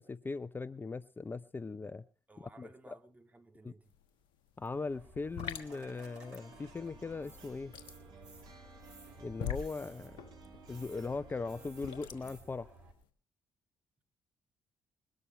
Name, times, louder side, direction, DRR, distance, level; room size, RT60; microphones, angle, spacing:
voice 1, 0.0-2.0 2.4-3.0 3.6-3.7 4.6-7.8 9.2-10.2 10.7-12.7, left 4 dB, 25° left, 0.6 m, -39 dB
voice 2, 2.3-4.0, right 2 dB, 20° right, 2.6 m, -57 dB
sound 1, 3.8-4.1 4.3-13.1, left 9 dB, 70° left, 1.5 m, -44 dB
sound 2, 4.9-12.9, right 1 dB, 80° right, 3.4 m, -55 dB
sound 3, 5.5-12.4, right 5 dB, 65° right, 2.9 m, -57 dB
21.0 x 12.5 x 3.2 m
hypercardioid pair, 45°, 8 cm